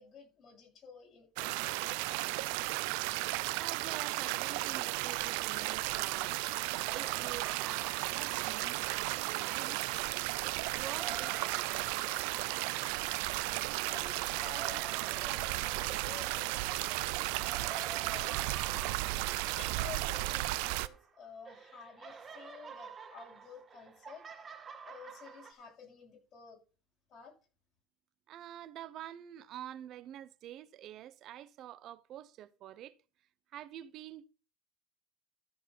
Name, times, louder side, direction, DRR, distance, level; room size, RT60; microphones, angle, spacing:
voice 1, 0.0-2.0 13.5-14.9 15.2-19.3 19.6-24.2 24.8-26.6 27.1-27.3, left 5 dB, 50° left, 6.9 m, -52 dB
sound 1, 1.4-20.9, right 20 dB, 80° right, 0.6 m, -34 dB
voice 2, 3.5-6.4 6.9-9.8 10.4-11.8 28.3-33.0 33.5-34.3, right 12 dB, 60° right, 0.9 m, -47 dB
sound 2, 6.9-10.1 10.6-21.2 21.5-25.5, right 6 dB, 30° right, 1.8 m, -49 dB
13.5 x 4.8 x 5.6 m
supercardioid pair, 90°, 0 cm